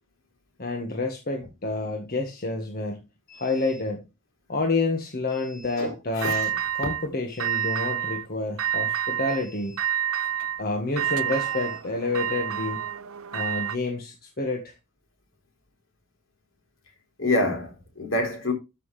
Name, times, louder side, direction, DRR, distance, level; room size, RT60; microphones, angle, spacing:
voice 1, 0.6-4.1 4.5-9.8 10.6-12.8 13.3-14.7, left 2 dB, 45° left, 1.6 m, -29 dB
voice 2, 5.8-6.5 17.2-18.5, left 1 dB, 65° left, 3.8 m, -27 dB
sound 1, 6.2-7.1 7.4-8.3 8.6-9.4 9.8-13.8, right 11 dB, 80° right, 0.6 m, -28 dB
13.0 x 6.1 x 3.3 m
head